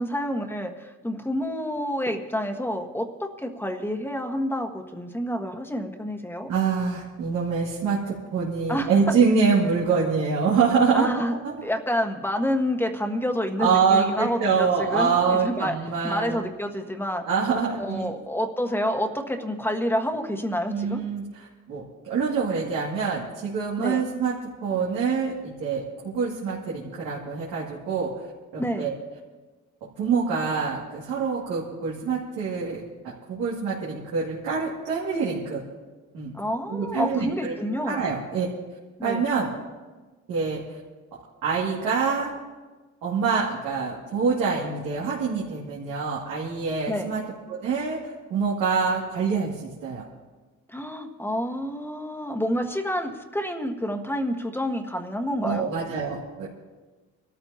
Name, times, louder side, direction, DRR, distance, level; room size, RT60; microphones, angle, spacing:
voice 1, 0.0-6.5 8.7-8.9 10.9-11.3 11.6-15.7 16.0-17.2 17.8-21.0 23.8-24.0 28.6-28.9 36.3-38.0 39.0-39.2 46.9-47.1 50.7-55.7, equal, 5° left, 4 dB, 1.5 m, -28 dB
voice 2, 6.5-11.1 11.4-11.6 13.6-16.4 17.3-18.0 20.7-24.3 24.6-28.1 28.5-28.9 30.0-35.6 36.1-36.3 36.7-37.6 37.9-38.5 39.0-39.5 40.3-40.6 41.4-42.3 43.0-47.2 47.5-50.0 55.4-56.5, right 5 dB, 90° right, -6 dB, 2.4 m, -25 dB
24.5 x 13.5 x 2.9 m, 1.3 s
cardioid pair, 90°, 30 cm